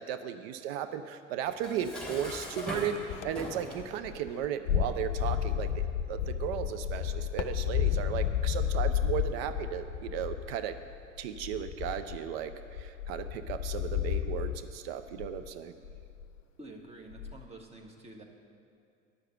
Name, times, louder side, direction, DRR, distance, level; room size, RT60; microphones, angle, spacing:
voice 1, 0.0-10.8 11.2-15.7, right 9 dB, 50° right, 10 dB, 0.6 m, -35 dB
Dishes pots and pans, 1.5-3.9, left 1 dB, ahead, 2.7 m, -40 dB
sound 1, 2.6-3.5 3.8-14.7 15.1-15.5 15.8-16.4 17.1-17.5, left 9 dB, 70° left, 0.6 m, -32 dB
voice 2, 16.6-18.2, right 2 dB, 15° right, 1 dB, 1.5 m, -48 dB
10.0 x 6.6 x 7.6 m, 2.4 s
figure-of-eight pair, 70°, 38 cm